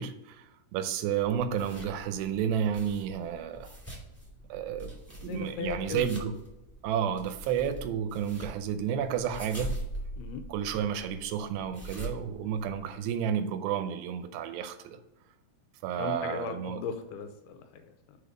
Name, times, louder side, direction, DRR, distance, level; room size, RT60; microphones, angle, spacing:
voice 1, 0.0-3.8 4.5-6.4 6.8-9.8 10.5-15.0 15.8-16.8, right 8 dB, 90° right, 2.8 m, -31 dB
sound 1, 1.2-13.1, right 1 dB, 5° right, 1.2 m, -43 dB
voice 2, 5.2-6.1 10.2-10.4 16.0-18.2, left 5 dB, 80° left, 2.4 m, -37 dB
7.1 x 4.2 x 5.0 m
omnidirectional pair, 4.8 m